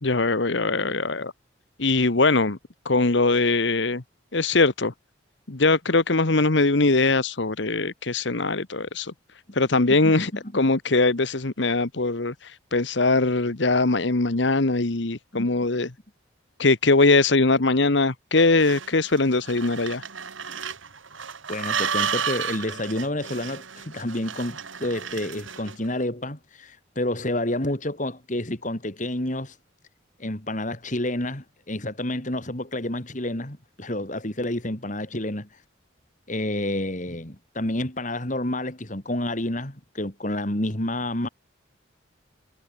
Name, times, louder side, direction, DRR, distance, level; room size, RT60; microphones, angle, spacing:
voice 1, 0.0-1.3 1.8-2.6 2.8-4.0 4.3-4.9 5.5-9.1 9.5-15.9 16.6-20.0, left 3 dB, 65° left, 1.3 m, -21 dB
voice 2, 9.9-10.3 15.3-15.5 21.5-29.5 30.2-35.5 36.3-41.3, left 1 dB, 40° left, 2.8 m, -29 dB
sound 1, 18.4-25.9, right 7 dB, 85° right, 3.2 m, -32 dB
head